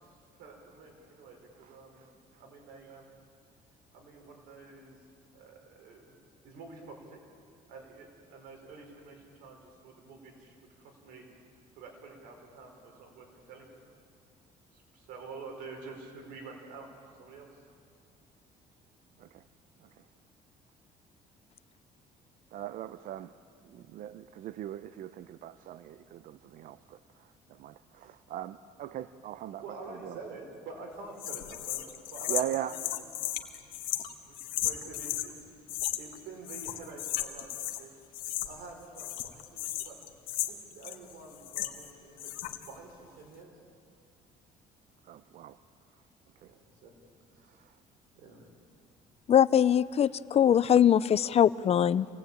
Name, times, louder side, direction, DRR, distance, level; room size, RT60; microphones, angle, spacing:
voice 1, 0.0-2.1 2.4-3.2 3.9-5.0 5.3-7.2 7.7-11.3 11.8-13.7 14.7-16.9 17.2-17.5 23.7-23.8 29.2-33.2 34.2-35.6 36.0-37.9 38.4-40.0 40.5-43.6 46.4-46.9 47.3-47.6 48.1-48.5 50.0-50.2, right 3 dB, 85° right, 2 dB, 5.3 m, -48 dB
voice 2, 22.5-23.3 23.9-26.8 27.6-27.7 28.3-29.6 32.3-32.7 45.1-45.5, right 12 dB, 70° right, 13 dB, 0.7 m, -38 dB
sound 1, 31.2-35.3 35.7-36.2 36.4-37.8 38.1-38.7 39.0-41.9 42.2-42.7, left 14 dB, 80° left, 1.5 m, -35 dB
voice 3, 49.3-52.1, left 9 dB, 45° left, 18 dB, 0.6 m, -22 dB
26.0 x 18.5 x 8.9 m, 2.3 s
cardioid pair, 100°, 15 cm